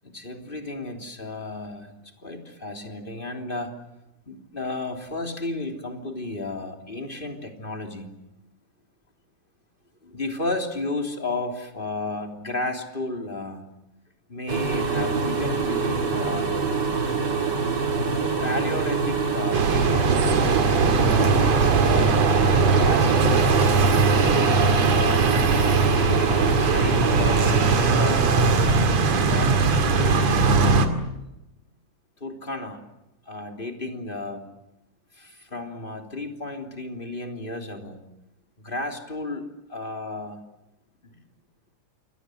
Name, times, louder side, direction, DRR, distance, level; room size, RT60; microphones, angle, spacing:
voice 1, 0.0-1.9 2.2-3.8 4.3-8.1 10.0-13.6 14.3-16.6 18.4-20.1 20.4-20.6 20.9-22.1 22.6-23.5 24.1-28.6 29.2-30.8 32.2-32.8 33.3-34.4 35.1-38.0 38.6-40.4 41.0-41.2, left 2 dB, 15° left, 3 dB, 3.1 m, -33 dB
sound 1, 14.5-27.8, right 4 dB, 35° right, 2.8 m, -25 dB
sound 2, 19.5-30.9, right 4 dB, 60° right, 3.3 m, -20 dB
29.0 x 23.0 x 7.8 m, 0.92 s
omnidirectional pair, 3.5 m